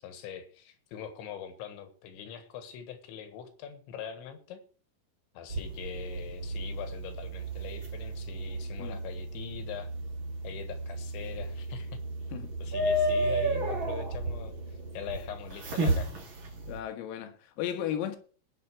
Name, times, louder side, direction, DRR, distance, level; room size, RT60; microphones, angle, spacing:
voice 1, 0.0-4.6 5.4-9.9 10.4-12.0 12.6-16.3, left 8 dB, 70° left, 3.5 m, -42 dB
sound 1, 5.5-16.8, right 1 dB, 40° right, 1.7 m, -33 dB
voice 2, 16.7-18.2, left 10 dB, 90° left, 4.2 m, -35 dB
20.0 x 6.7 x 4.7 m
omnidirectional pair, 5.9 m